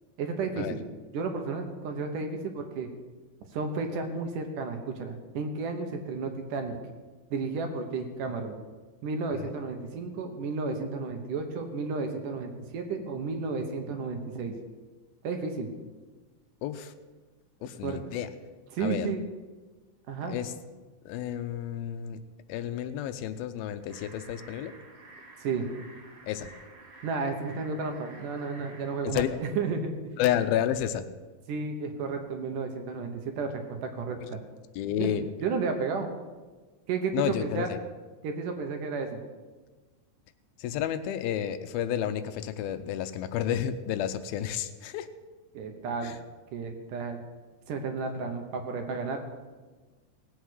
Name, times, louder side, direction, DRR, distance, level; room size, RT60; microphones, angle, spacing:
voice 1, 0.2-0.8 1.1-2.9 3.5-6.8 7.3-8.6 9.0-14.5 15.2-15.7 17.8-18.0 18.7-19.3 20.1-20.4 25.4-25.7 27.0-29.2 29.6-30.0 31.5-34.4 35.0-36.1 36.9-37.7 38.2-39.2 45.5-46.2 46.5-47.2 47.7-49.2, right 4 dB, 65° right, 5 dB, 2.5 m, -32 dB
voice 2, 16.6-16.9 17.6-18.3 18.8-19.1 20.2-20.5 21.1-22.2 22.5-24.8 26.2-26.5 29.0-29.3 30.2-31.1 34.8-35.3 37.1-37.8 40.6-45.1 46.0-46.2, left 10 dB, 80° left, 11 dB, 2.5 m, -31 dB
sound 1, 23.9-28.9, right 2 dB, 45° right, 2.6 m, -51 dB
18.5 x 8.2 x 6.3 m, 1.3 s
omnidirectional pair, 4.3 m